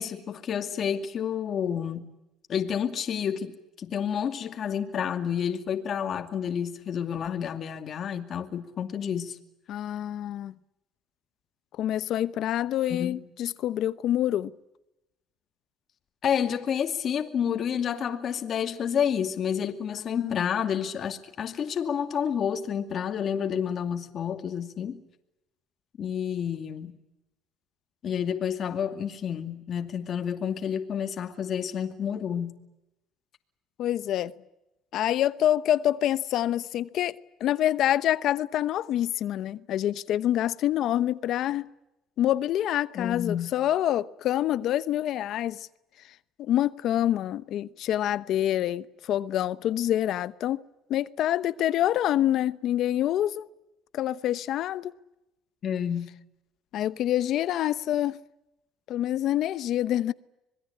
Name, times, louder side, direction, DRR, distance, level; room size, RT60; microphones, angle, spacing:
voice 1, 0.0-2.1 2.5-9.4 12.9-13.2 16.2-25.0 26.0-27.0 28.0-32.5 42.9-43.5 55.6-56.1, left 8 dB, 45° left, 2.4 m, -29 dB
voice 2, 9.7-10.5 11.8-14.5 20.1-20.4 33.8-34.3 34.9-41.7 42.2-45.7 46.4-50.6 50.9-53.5 53.9-54.9 56.7-58.2 58.9-60.1, left 12 dB, 60° left, 0.9 m, -26 dB
26.0 x 21.0 x 8.7 m
cardioid pair, 120°, 0 cm